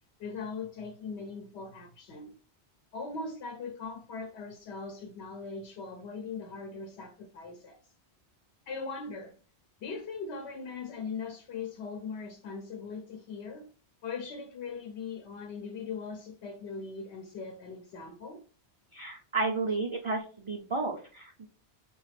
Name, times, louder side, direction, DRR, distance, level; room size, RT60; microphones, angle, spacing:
voice 1, 0.2-2.4 2.9-7.8 8.7-9.3 9.8-13.7 14.0-18.4, left 4 dB, 75° left, 0.9 m, -40 dB
voice 2, 18.9-21.5, right 3 dB, 55° right, 0.3 m, -32 dB
4.8 x 2.3 x 3.1 m
omnidirectional pair, 1.1 m